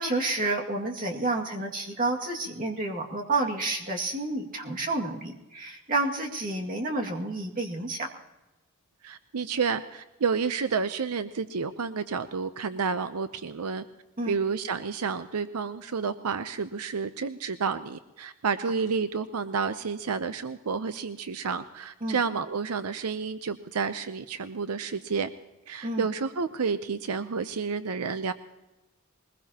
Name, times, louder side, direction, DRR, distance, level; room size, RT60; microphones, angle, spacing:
voice 1, 0.0-8.1 14.2-14.4 22.0-22.2 25.8-26.1, right 2 dB, 40° right, 0 dB, 2.1 m, -30 dB
voice 2, 9.0-13.8 14.3-25.3 25.7-28.3, right 5 dB, 85° right, 11 dB, 0.6 m, -30 dB
22.0 x 21.0 x 2.9 m, 1.0 s
head